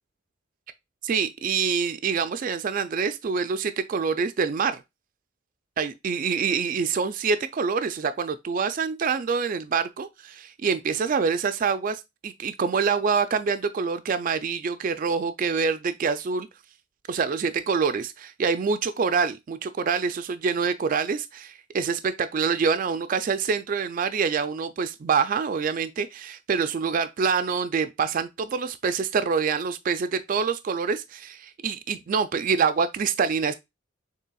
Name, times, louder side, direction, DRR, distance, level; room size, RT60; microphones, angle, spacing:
voice 1, 1.0-4.8 5.8-16.5 17.1-33.5, right 5 dB, 40° right, 0.3 m, -26 dB
6.6 x 3.2 x 2.3 m
head